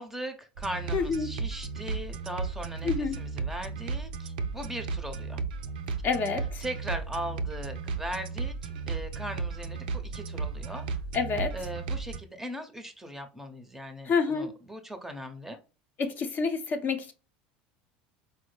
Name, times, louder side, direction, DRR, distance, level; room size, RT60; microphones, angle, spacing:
voice 1, 0.0-5.4 6.6-10.9 11.5-15.6, right 1 dB, 10° right, 0.6 m, -39 dB
sound 1, 0.6-12.2, right 4 dB, 90° right, 0.4 m, -34 dB
voice 2, 0.9-1.3 2.8-3.2 6.0-6.6 11.1-11.6 14.1-14.5 16.0-17.1, left 5 dB, 40° left, 0.6 m, -28 dB
4.3 x 2.0 x 3.1 m
supercardioid pair, 105°, 5 cm